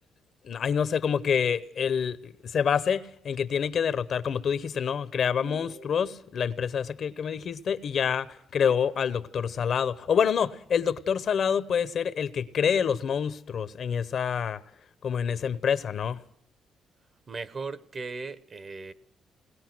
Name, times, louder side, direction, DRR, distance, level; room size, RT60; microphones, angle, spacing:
voice 1, 0.4-14.6 15.0-16.2, left 7 dB, 60° left, 0.9 m, -27 dB
sound 1, 5.4-6.5, right 3 dB, 65° right, 6.5 m, -47 dB
voice 2, 17.3-18.9, right 4 dB, 40° right, 1.1 m, -37 dB
21.5 x 19.5 x 6.1 m
cardioid pair, 90°, 0 cm